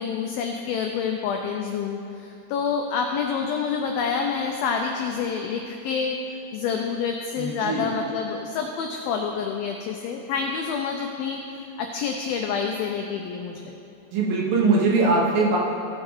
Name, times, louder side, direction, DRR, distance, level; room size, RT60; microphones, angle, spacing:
voice 1, 0.0-6.2 6.5-11.4 11.8-13.7, left 6 dB, 90° left, 3 dB, 2.1 m, -28 dB
voice 2, 7.4-7.9 14.1-15.6, right 3 dB, 70° right, -3 dB, 2.4 m, -21 dB
16.0 x 6.5 x 3.6 m, 2.9 s
omnidirectional pair, 4.9 m